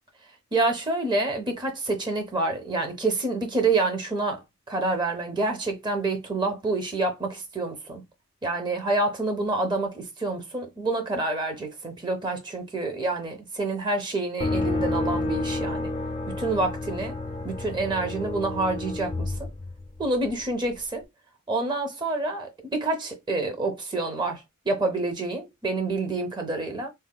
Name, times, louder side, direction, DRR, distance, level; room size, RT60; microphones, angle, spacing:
voice 1, 0.5-8.0 8.4-15.9 16.3-17.2 17.4-19.5 20.0-21.0 21.5-26.9, right 2 dB, 20° right, 0.6 m, -28 dB
sound 1, 14.4-20.3, left 2 dB, 30° left, 0.4 m, -30 dB
4.0 x 2.1 x 2.2 m
head